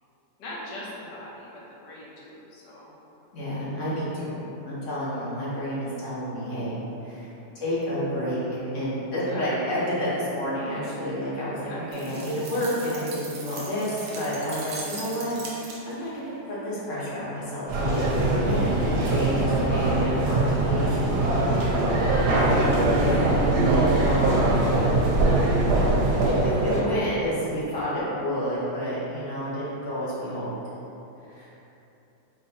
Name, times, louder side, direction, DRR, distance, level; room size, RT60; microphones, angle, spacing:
voice 1, 0.4-2.9 9.1-9.5 11.7-12.4 18.8-19.1, left 1 dB, 90° left, -6 dB, 1.4 m, -41 dB
voice 2, 3.3-6.8 7.0-7.3 7.5-22.4 23.6-24.5 26.2-30.5 31.3-31.5, equal, 55° left, -9 dB, 1.0 m, -30 dB
sound 1, 11.9-16.1, right 3 dB, 65° right, 0.7 m, -40 dB
sound 2, 17.7-26.8, right 2 dB, 80° right, 1.2 m, -22 dB
4.3 x 2.5 x 2.7 m, 3.0 s
omnidirectional pair, 1.8 m